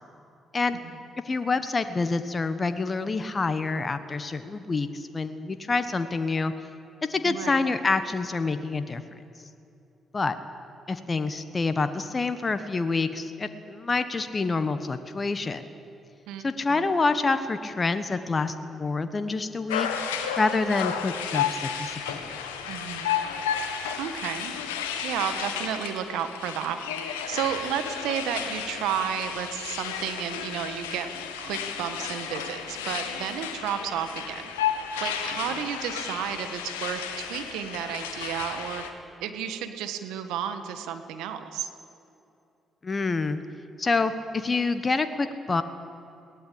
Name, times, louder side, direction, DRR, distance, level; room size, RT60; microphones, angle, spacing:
voice 1, 1.2-6.5 7.1-9.2 10.1-10.4 10.9-15.6 16.4-19.9 20.4-22.4 42.8-43.4 43.8-45.6, left 3 dB, 35° left, 10 dB, 1.3 m, -27 dB
voice 2, 7.2-7.6 16.3-16.4 16.7-16.9 22.6-23.1 24.0-24.5 25.0-31.1 31.4-34.5 35.0-38.8 39.2-41.7, right 9 dB, 75° right, 8 dB, 1.6 m, -32 dB
sound 1, 19.7-38.9, left 8 dB, 90° left, 1.5 m, -33 dB
21.0 x 18.5 x 8.7 m, 2.7 s
hypercardioid pair, 45°, 0 cm